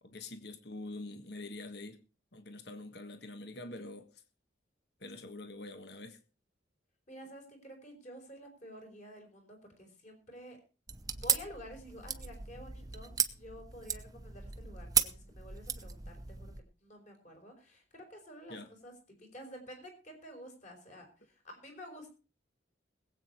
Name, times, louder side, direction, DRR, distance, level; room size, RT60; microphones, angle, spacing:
voice 1, 0.0-2.0 2.3-4.2 5.0-6.2 18.5-18.7, left 2 dB, 60° left, 1.5 m, -45 dB
voice 2, 7.1-10.6 11.1-18.6 18.8-22.1, equal, 40° left, 4.7 m, -50 dB
sound 1, 10.9-16.6, right 7 dB, 20° right, 0.8 m, -35 dB
21.0 x 8.4 x 4.5 m
head